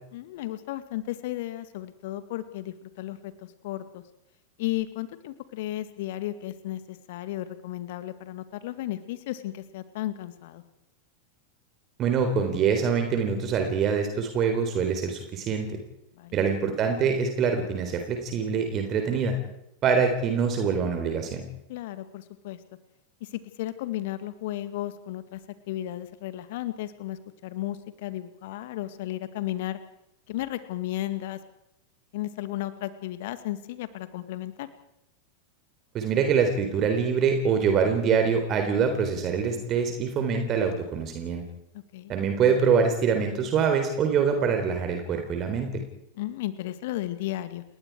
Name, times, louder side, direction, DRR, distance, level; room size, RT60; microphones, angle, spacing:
voice 1, 0.1-4.0 4.6-10.6 16.2-16.4 21.7-22.6 23.2-25.4 25.7-29.8 30.3-31.4 32.1-34.7 41.7-42.1 46.2-47.6, left 14 dB, 50° left, 11 dB, 2.2 m, -34 dB
voice 2, 12.0-15.7 16.3-19.4 19.8-21.4 35.9-41.4 42.1-45.8, right 6 dB, 30° right, 5 dB, 3.8 m, -24 dB
29.5 x 21.0 x 4.8 m, 0.81 s
figure-of-eight pair, 90°, 0 cm